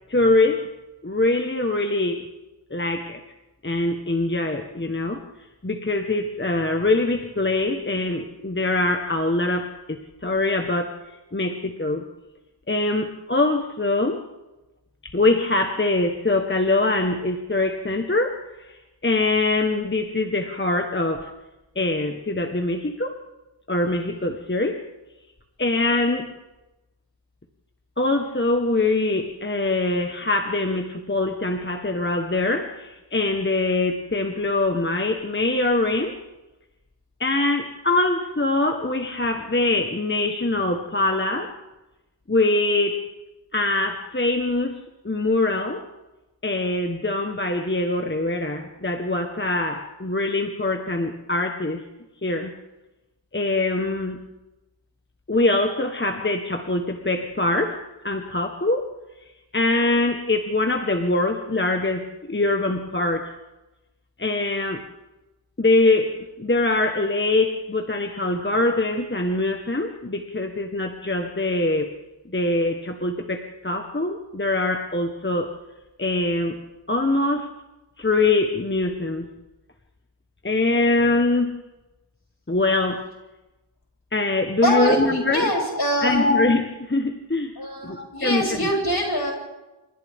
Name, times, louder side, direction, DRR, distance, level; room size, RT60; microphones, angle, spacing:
voice 1, 0.1-0.7 1.0-2.3 2.7-3.2 3.6-5.2 5.6-10.9 11.3-12.0 12.7-14.2 15.0-21.3 21.7-23.2 23.7-24.8 25.6-26.4 28.0-36.2 37.2-41.5 42.3-43.0 43.5-45.8 46.4-51.8 52.2-52.5 53.3-54.2 55.3-57.8 58.0-58.9 59.5-63.3 64.2-64.8 65.6-71.9 72.3-75.6 76.0-76.6 76.9-77.5 78.0-79.3 80.4-81.6 82.5-83.0 84.1-85.5 86.0-87.6 87.8-88.7, left 2 dB, 25° left, 4 dB, 1.3 m, -23 dB
voice 2, 84.6-86.3 87.6-89.3, equal, 55° left, 0 dB, 7.9 m, -24 dB
29.0 x 27.0 x 3.7 m, 1.1 s
wide cardioid pair, 60°, 45 cm